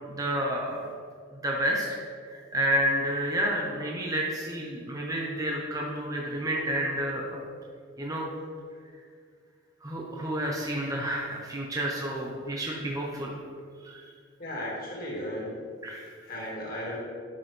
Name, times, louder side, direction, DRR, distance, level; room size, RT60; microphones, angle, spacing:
voice 1, 0.1-0.8 1.4-2.0 2.2-7.4 8.0-8.3 9.8-13.4 13.8-14.1 15.8-16.1, right 1 dB, 20° right, -2 dB, 0.8 m, -30 dB
voice 2, 14.4-15.6 16.2-17.0, left 1 dB, 50° left, -4 dB, 2.0 m, -35 dB
11.0 x 6.0 x 3.3 m, 2.1 s
head